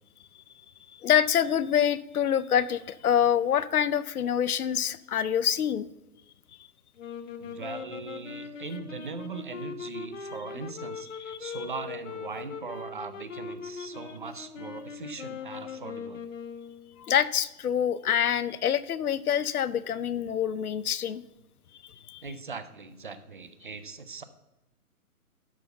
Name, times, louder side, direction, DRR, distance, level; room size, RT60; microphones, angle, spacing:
voice 1, 1.0-5.9 11.5-11.6 17.0-21.2 22.1-22.2, left 9 dB, 75° left, 17 dB, 0.7 m, -26 dB
sound 1, 7.0-17.0, left 6 dB, 55° left, 1.1 m, -40 dB
voice 2, 7.4-16.2 22.2-24.2, right 4 dB, 35° right, 12 dB, 0.5 m, -40 dB
12.0 x 4.2 x 6.7 m, 0.92 s
hypercardioid pair, 165°, 45 cm